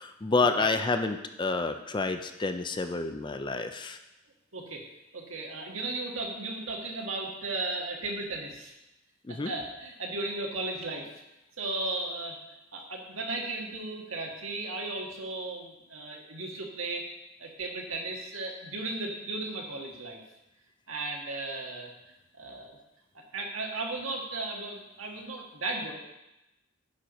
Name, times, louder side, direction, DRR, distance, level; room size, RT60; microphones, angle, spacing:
voice 1, 0.0-4.0 9.3-9.5, left 3 dB, 25° left, 8 dB, 0.4 m, -29 dB
voice 2, 4.5-4.8 5.1-8.7 9.3-11.1 11.6-12.4 12.7-17.0 17.4-20.2 20.9-21.9 22.4-22.8 23.1-25.9, right 2 dB, 90° right, 1 dB, 1.5 m, -35 dB
9.4 x 4.5 x 5.2 m, 0.94 s
head